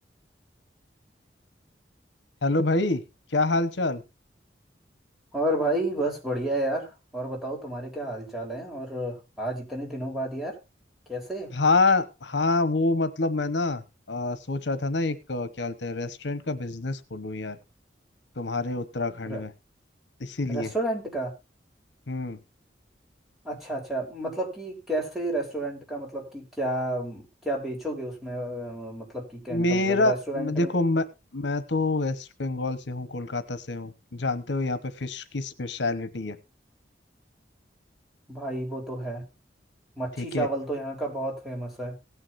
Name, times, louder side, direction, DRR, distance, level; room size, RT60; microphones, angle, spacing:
voice 1, 2.4-3.0 3.3-4.0 11.5-17.6 18.4-19.5 20.2-20.7 22.1-22.4 29.5-31.0 31.3-36.4 40.2-40.5, left 2 dB, 80° left, 13 dB, 1.1 m, -27 dB
voice 2, 5.3-10.6 11.1-11.5 19.2-19.4 20.5-21.3 23.4-30.7 38.3-39.2 40.0-42.0, right 1 dB, ahead, -1 dB, 3.8 m, -31 dB
17.5 x 9.7 x 2.6 m, 0.27 s
head